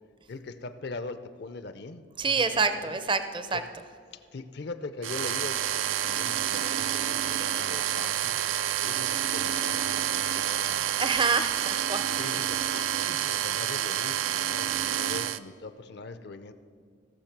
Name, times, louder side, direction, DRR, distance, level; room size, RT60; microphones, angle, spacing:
voice 1, 0.3-3.0 3.5-3.6 4.1-8.4 8.8-11.0 12.2-16.5, left 3 dB, 55° left, 12 dB, 0.5 m, -41 dB
voice 2, 2.2-3.6 11.0-12.2, right 4 dB, 25° right, 10 dB, 0.5 m, -27 dB
sound 1, 5.0-15.4, right 11 dB, 85° right, 0.4 m, -28 dB
16.5 x 6.9 x 5.9 m, 2.1 s
head